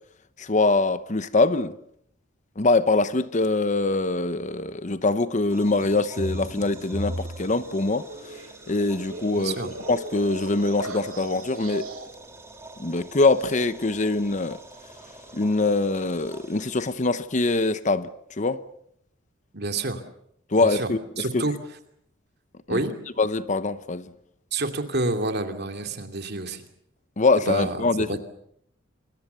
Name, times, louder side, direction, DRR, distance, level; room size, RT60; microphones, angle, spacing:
voice 1, 0.4-1.8 2.6-8.1 8.7-11.9 12.8-14.6 15.3-18.1 18.4-18.6 20.5-21.4 22.7-22.9 23.2-24.1 27.2-28.1, left 3 dB, 35° left, 0.9 m, -23 dB
sound 1, 5.5-17.0, right 2 dB, 15° right, 3.4 m, -47 dB
sound 2, 5.8-12.1, right 1 dB, 90° right, 3.4 m, -37 dB
voice 2, 9.4-9.7 19.5-20.0 20.6-20.9 21.2-21.5 22.7-22.9 24.5-26.7 27.5-28.2, right 2 dB, 55° right, 2.6 m, -28 dB
27.5 x 22.0 x 6.9 m
head